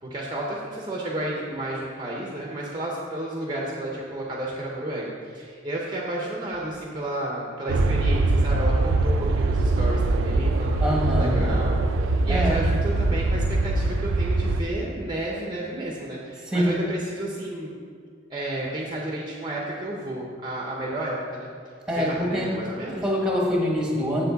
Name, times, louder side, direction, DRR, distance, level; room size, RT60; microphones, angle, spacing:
voice 1, 0.0-17.7 18.3-21.5 21.9-23.0, right 1 dB, 20° right, -3 dB, 0.7 m, -32 dB
sound 1, 7.7-14.6, right 2 dB, 80° right, 0.4 m, -22 dB
voice 2, 10.8-11.5 12.3-12.6 16.5-16.7 21.9-22.5 22.9-24.2, equal, 5° right, -2 dB, 1.1 m, -24 dB
7.3 x 6.9 x 4.0 m, 2.1 s
head